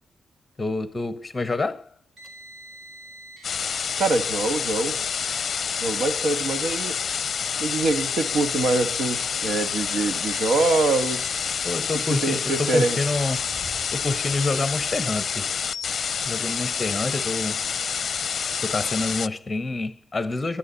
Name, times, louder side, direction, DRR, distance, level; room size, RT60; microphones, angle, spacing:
voice 1, 0.6-1.9 11.6-13.5 13.9-15.5 16.2-17.6 18.6-20.6, left 3 dB, 15° left, 1.1 m, -27 dB
Car, 2.2-3.5 3.9-4.1 4.4-4.6 5.0-5.6 6.4-6.6 7.5-7.6 9.9-11.5 11.9-12.1 12.5-12.7 13.0-13.6, right 2 dB, 50° right, 4.5 m, -45 dB
sound 1, 3.4-19.3, left 6 dB, 45° left, 0.6 m, -28 dB
voice 2, 4.0-4.9 5.8-7.0 7.6-11.3 12.1-13.0, right 3 dB, 70° right, 1.9 m, -24 dB
sound 2, 8.5-16.4, equal, 15° right, 7.0 m, -51 dB
26.0 x 11.5 x 4.1 m
wide cardioid pair, 165°, 0 cm